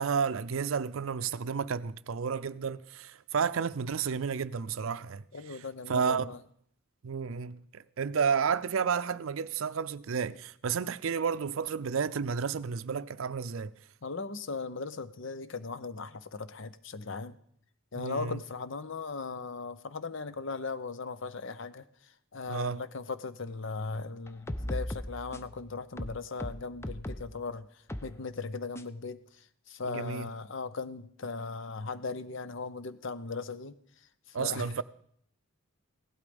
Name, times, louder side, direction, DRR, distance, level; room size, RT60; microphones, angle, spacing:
voice 1, 0.0-5.2 5.9-6.3 7.0-13.7 18.0-18.4 22.5-22.8 29.8-30.3 34.3-34.8, right 6 dB, 70° right, 0.5 m, -31 dB
voice 2, 5.3-6.4 14.0-17.4 17.9-34.8, left 4 dB, 60° left, 0.8 m, -38 dB
sound 1, 24.3-25.6 26.0-27.3 27.9-28.1 28.8-28.9, left 1 dB, 10° left, 0.5 m, -37 dB
16.5 x 12.0 x 5.2 m
head